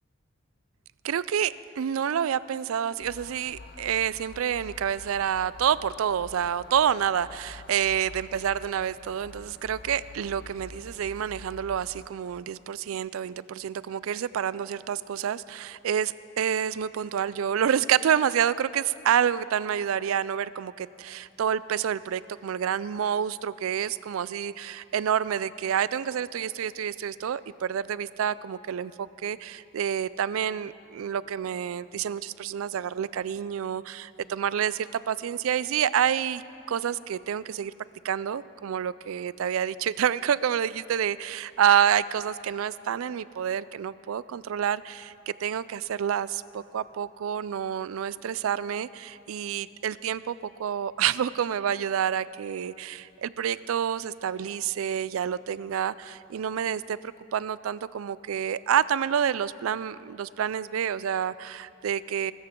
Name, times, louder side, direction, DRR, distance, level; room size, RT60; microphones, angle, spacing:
voice 1, 1.0-36.4 36.7-37.7 38.0-57.0 57.3-62.3, right 8 dB, 90° right, 18 dB, 0.4 m, -28 dB
sound 1, 3.0-12.1, left 3 dB, 50° left, 0.5 m, -47 dB
21.5 x 13.5 x 3.7 m, 2.8 s
head